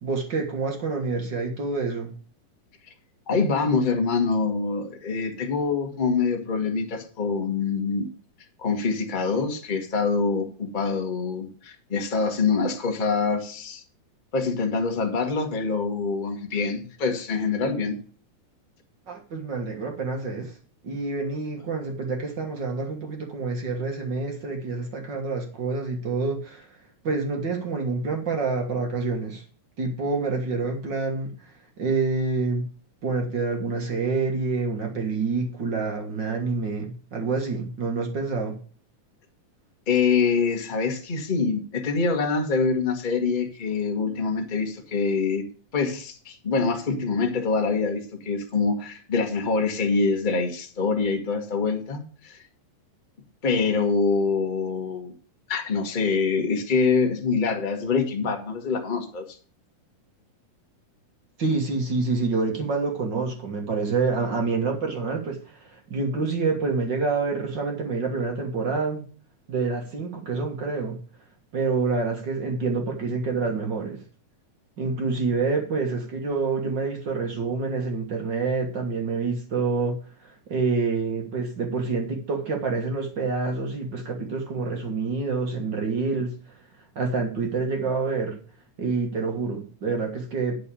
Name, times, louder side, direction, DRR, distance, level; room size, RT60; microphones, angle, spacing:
voice 1, 0.0-2.1 19.1-20.5 20.8-26.7 27.0-29.4 29.8-31.5 31.8-32.7 33.0-38.6 61.4-69.1 69.5-71.0 71.5-74.0 74.8-86.6 86.9-88.4 88.8-90.6, right 4 dB, 50° right, 3 dB, 1.4 m, -27 dB
voice 2, 3.3-8.1 8.6-13.8 14.3-18.0 39.9-45.4 45.7-52.4 53.4-55.1 55.5-59.4, left 4 dB, 35° left, 2 dB, 0.7 m, -25 dB
10.5 x 4.8 x 6.9 m, 0.42 s
omnidirectional pair, 3.9 m